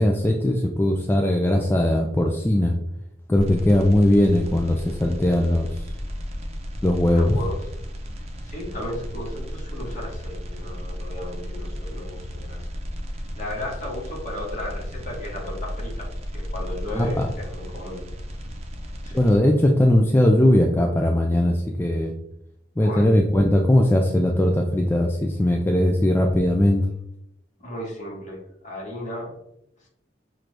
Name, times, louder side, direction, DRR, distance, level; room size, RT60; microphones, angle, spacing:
voice 1, 0.0-2.7 3.3-5.7 6.8-7.4 16.9-17.3 19.1-22.1 22.8-26.8, left 1 dB, 10° left, 1 dB, 0.3 m, -19 dB
sound 1, 3.4-19.4, equal, 35° right, 0.7 m, -34 dB
voice 2, 7.1-7.5 8.5-12.7 13.4-16.1 16.3-18.0 19.0-19.2 22.8-23.2 27.6-29.3, left 1 dB, 45° left, -3 dB, 1.7 m, -35 dB
6.0 x 2.5 x 3.2 m, 0.81 s
head